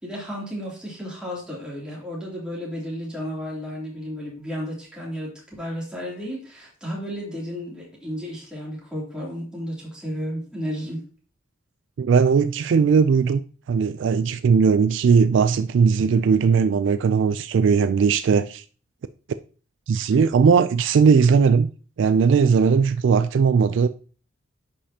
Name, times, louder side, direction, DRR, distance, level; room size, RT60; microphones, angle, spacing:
voice 1, 0.0-11.0, equal, 5° right, 2.7 m, -33 dB
voice 2, 12.0-13.4 13.7-18.6 19.9-21.7 22.0-23.9, right 5 dB, 65° right, 0.3 m, -18 dB
10.5 x 5.2 x 2.8 m
head